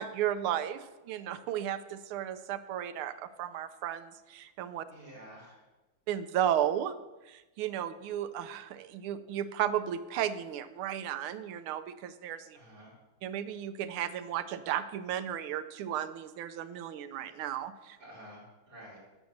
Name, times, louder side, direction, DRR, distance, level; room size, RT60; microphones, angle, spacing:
voice 1, 0.0-4.8 6.1-6.9 7.2-12.6 13.2-18.0, right 10 dB, 85° right, 12 dB, 1.6 m, -34 dB
voice 2, 4.9-5.6 12.5-12.9 18.0-19.0, right 1 dB, 40° right, -6 dB, 4.6 m, -50 dB
10.0 x 6.5 x 7.1 m, 1.1 s
omnidirectional pair, 2.3 m